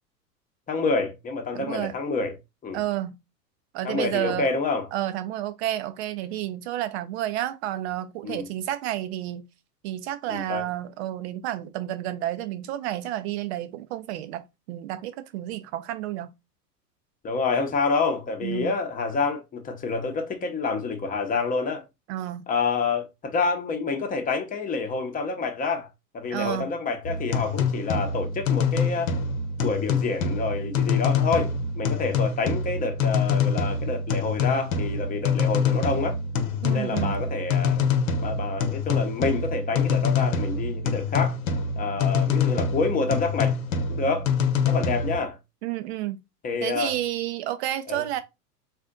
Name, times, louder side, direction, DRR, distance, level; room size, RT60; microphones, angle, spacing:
voice 1, 0.7-2.3 2.6-2.8 3.8-4.9 8.2-8.5 10.3-10.6 17.2-21.8 22.5-25.9 26.1-29.1 29.6-31.5 31.8-36.2 36.7-37.9 38.2-41.4 41.8-43.6 43.9-44.3 44.6-45.4 46.4-46.9 47.9-48.0, left 4 dB, 15° left, 0.9 m, -27 dB
voice 2, 1.5-1.9 2.7-3.1 3.7-4.5 4.9-9.4 9.8-14.4 14.7-16.3 18.4-18.8 22.1-22.4 26.3-26.7 36.6-37.2 45.6-46.2 46.6-48.2, right 13 dB, 45° right, 0.6 m, -30 dB
sound 1, 27.0-45.2, left 5 dB, 55° left, 1.0 m, -25 dB
4.1 x 2.5 x 3.7 m
hypercardioid pair, 100°, 48 cm